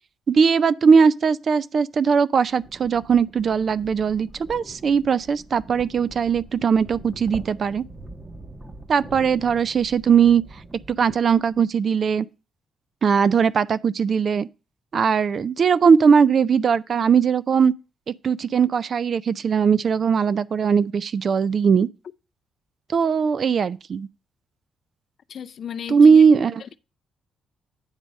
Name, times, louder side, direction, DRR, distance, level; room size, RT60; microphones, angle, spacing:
voice 1, 0.3-7.8 8.9-10.4 11.0-12.3 13.0-14.5 14.9-17.7 18.2-21.9 22.9-24.1 25.9-26.5, right 6 dB, 50° right, 0.4 m, -19 dB
sound 1, 2.4-11.7, right 2 dB, 20° right, 1.0 m, -43 dB
voice 2, 25.3-26.2 26.6-26.8, left 8 dB, 55° left, 0.4 m, -35 dB
8.9 x 3.4 x 6.2 m
cardioid pair, 90°, 0 cm